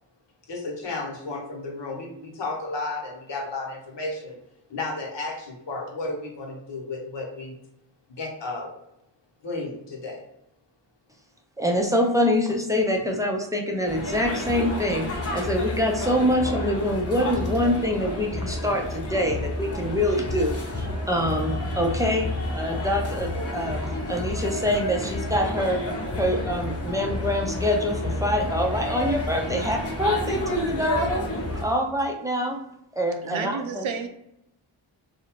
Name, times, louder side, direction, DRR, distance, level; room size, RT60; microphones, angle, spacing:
voice 1, 0.5-4.4 4.7-7.5 8.1-8.7 9.4-10.3, left 2 dB, 60° left, 0 dB, 0.9 m, -33 dB
voice 2, 11.6-23.8 24.1-25.8 26.2-31.3 31.5-32.6 32.9-33.9, left 1 dB, 5° right, 1 dB, 0.6 m, -25 dB
sound 1, 13.9-31.6, left 1 dB, 30° left, 0.9 m, -30 dB
voice 3, 33.2-34.1, right 5 dB, 70° right, 6 dB, 0.6 m, -30 dB
2.6 x 2.0 x 2.9 m, 0.82 s
cardioid pair, 45°, 49 cm